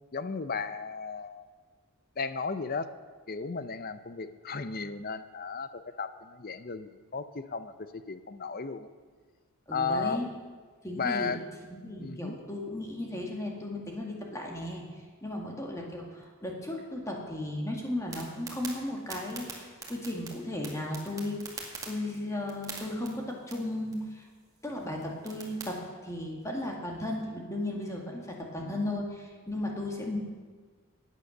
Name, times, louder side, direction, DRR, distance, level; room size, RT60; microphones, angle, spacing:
voice 1, 0.1-1.5 2.2-2.9 3.3-8.9 9.7-10.2 11.0-11.4 12.0-12.3, left 4 dB, 45° left, 12 dB, 0.6 m, -34 dB
voice 2, 9.7-10.3 10.8-11.4 11.7-14.8 15.2-21.5 21.9-24.2 24.6-30.2, left 1 dB, 15° left, -1 dB, 2.2 m, -35 dB
sound 1, 18.1-25.7, right 4 dB, 15° right, 2.2 m, -46 dB
15.5 x 9.6 x 6.6 m, 1.5 s
head